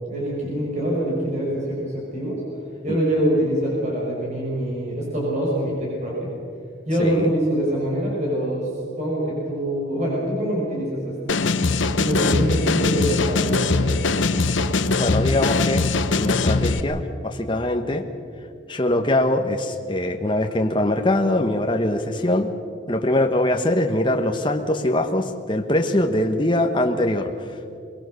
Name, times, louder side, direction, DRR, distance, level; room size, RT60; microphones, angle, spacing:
voice 1, 0.1-2.4 2.8-6.3 6.9-8.7 9.0-11.4 12.0-14.1, right 1 dB, 35° right, -4 dB, 5.9 m, -24 dB
sound 1, 11.3-16.8, left 3 dB, 75° left, 0.9 m, -21 dB
voice 2, 15.0-15.9 16.1-18.1 18.7-22.5 22.9-27.5, left 1 dB, 25° left, 4 dB, 1.2 m, -22 dB
23.0 x 21.5 x 6.6 m, 2.4 s
head